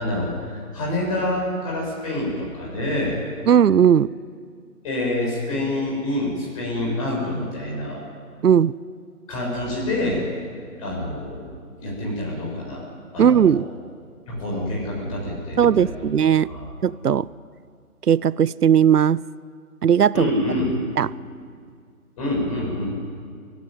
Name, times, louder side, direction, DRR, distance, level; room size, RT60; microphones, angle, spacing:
voice 1, 0.0-3.2 4.8-8.0 9.3-10.2 10.8-11.5 11.8-12.8 13.1-13.6 14.3-16.1 16.4-16.7 20.1-20.7 22.2-22.9, left 1 dB, 20° left, -3 dB, 7.1 m, -27 dB
voice 2, 3.5-4.1 8.4-8.7 13.2-13.7 15.6-16.5 16.8-17.3 18.1-19.2 19.8-20.3 21.0-21.1, right 8 dB, 80° right, 21 dB, 0.6 m, -17 dB
24.5 x 15.5 x 9.5 m, 2.1 s
figure-of-eight pair, 155°, 46 cm